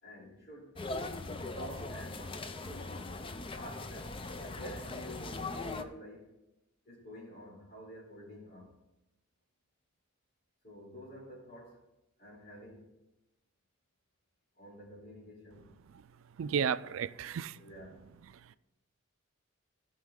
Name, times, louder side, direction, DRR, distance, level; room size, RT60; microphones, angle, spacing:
voice 1, 0.0-0.8 1.5-3.0 3.5-6.3 6.8-8.7 10.6-11.8 12.2-12.9 14.6-15.7 17.5-18.1, equal, 50° left, 3.2 m, -49 dB
sound 1, 0.7-5.8, left 3 dB, 25° left, 0.5 m, -40 dB
voice 2, 16.4-17.6 18.4-18.6, right 7 dB, 80° right, 0.4 m, -33 dB
16.0 x 5.6 x 3.7 m
head